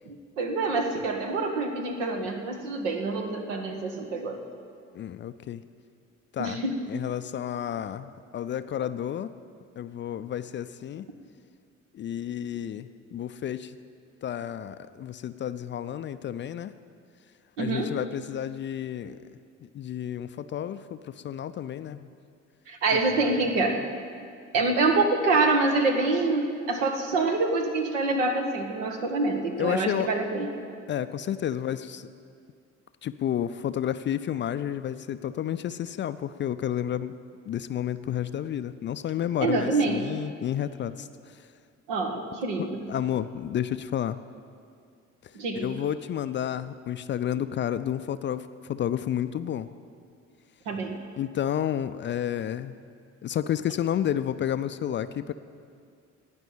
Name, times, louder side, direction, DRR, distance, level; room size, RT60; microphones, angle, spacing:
voice 1, 0.1-4.4 6.4-6.8 17.6-18.0 22.7-23.8 24.5-30.5 39.4-40.0 41.9-42.8 45.3-45.7 50.7-51.0, right 3 dB, 70° right, 4 dB, 1.5 m, -26 dB
voice 2, 4.9-5.6 6.3-6.6 6.9-9.3 9.8-11.1 11.9-13.7 14.2-16.7 17.6-19.2 19.6-22.1 29.6-30.1 30.9-32.1 33.0-37.1 37.5-41.4 42.6-44.2 45.5-49.7 51.2-52.7 53.2-55.3, left 10 dB, 30° left, 12 dB, 0.5 m, -31 dB
18.0 x 6.0 x 8.8 m, 2.3 s
figure-of-eight pair, 50°, 38 cm